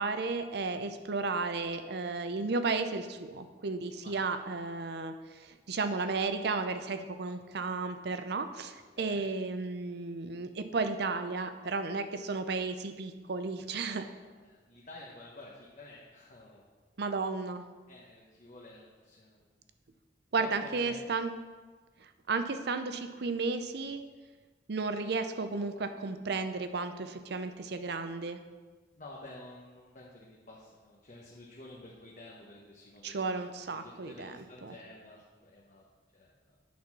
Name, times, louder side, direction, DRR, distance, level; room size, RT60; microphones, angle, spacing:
voice 1, 0.0-14.0 17.0-17.7 20.3-21.3 22.0-24.0 24.7-28.4 33.0-34.7, right 4 dB, 65° right, 9 dB, 0.6 m, -33 dB
voice 2, 14.0-16.6 17.9-19.7 20.4-21.0 29.0-35.8 36.1-36.6, left 2 dB, 45° left, -3 dB, 1.0 m, -51 dB
9.3 x 4.2 x 6.0 m, 1.4 s
head